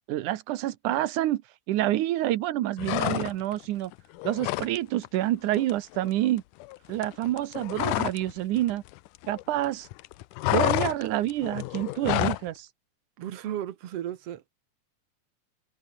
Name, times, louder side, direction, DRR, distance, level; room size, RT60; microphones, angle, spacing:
voice 1, 0.1-1.4 1.7-3.9 4.2-6.4 6.9-8.8 9.3-9.9 10.5-12.7, right 14 dB, 75° right, 2.4 m, -27 dB
sound 1, 2.8-3.6 3.9-4.8 5.0-5.3 5.5-8.3 8.6-9.7 9.9-12.5, left 19 dB, 85° left, 2.2 m, -29 dB
voice 2, 13.2-14.5, right 11 dB, 55° right, 2.1 m, -35 dB
omnidirectional pair, 3.7 m